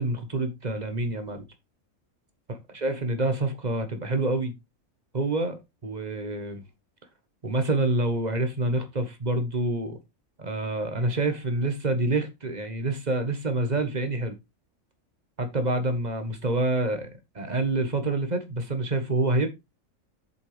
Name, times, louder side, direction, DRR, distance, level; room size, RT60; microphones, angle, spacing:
voice 1, 0.0-1.4 2.5-4.5 5.1-6.6 7.4-10.0 10.4-14.3 15.4-17.1 17.3-19.5, right 2 dB, 30° right, 1.3 m, -27 dB
8.2 x 7.0 x 3.3 m
omnidirectional pair, 1.4 m